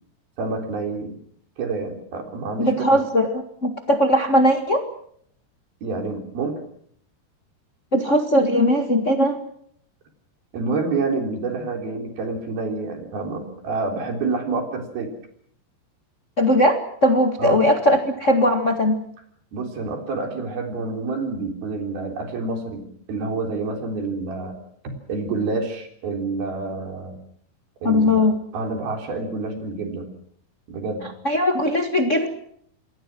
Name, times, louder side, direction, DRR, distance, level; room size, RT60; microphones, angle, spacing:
voice 1, 0.4-1.2 1.6-3.0 5.8-6.6 10.5-15.1 17.4-17.6 19.5-24.6 24.8-27.2 27.8-28.2 28.5-30.1 30.7-31.1, right 3 dB, 65° right, 4 dB, 5.5 m, -28 dB
voice 2, 2.6-4.8 7.9-9.4 16.4-19.0 27.8-28.3 31.2-32.3, left 1 dB, 65° left, 5 dB, 0.7 m, -19 dB
28.0 x 21.5 x 6.1 m, 0.65 s
omnidirectional pair, 4.8 m